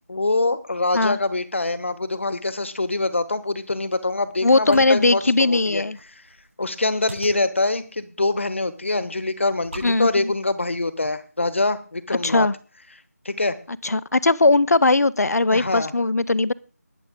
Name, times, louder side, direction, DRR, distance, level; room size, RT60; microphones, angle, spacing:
voice 1, 0.1-5.8 6.6-12.5 13.2-13.6 15.5-15.9, left 2 dB, 50° left, 14 dB, 1.1 m, -24 dB
sound 1, 3.6-11.2, right 2 dB, 50° right, 6.5 m, -45 dB
voice 2, 4.4-6.0 9.8-10.3 12.2-12.5 13.8-16.5, left 3 dB, 70° left, 19 dB, 0.6 m, -19 dB
20.0 x 7.8 x 3.7 m, 0.37 s
figure-of-eight pair, 175°, 9 cm